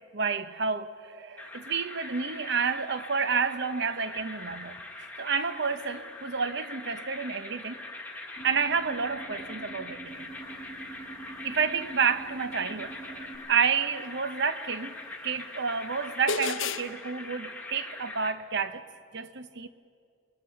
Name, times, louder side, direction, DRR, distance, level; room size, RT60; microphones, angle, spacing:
voice 1, 0.0-4.8 5.2-7.8 8.4-10.3 11.4-18.8 19.1-19.7, right 5 dB, 55° right, 0.9 m, -30 dB
sound 1, 1.4-18.3, left 2 dB, 10° left, 1.5 m, -42 dB
sound 2, 8.4-13.4, right 3 dB, 75° right, 4.1 m, -45 dB
sound 3, 15.3-15.4 16.3-16.9, left 4 dB, 65° left, 0.8 m, -30 dB
29.0 x 20.5 x 5.8 m
head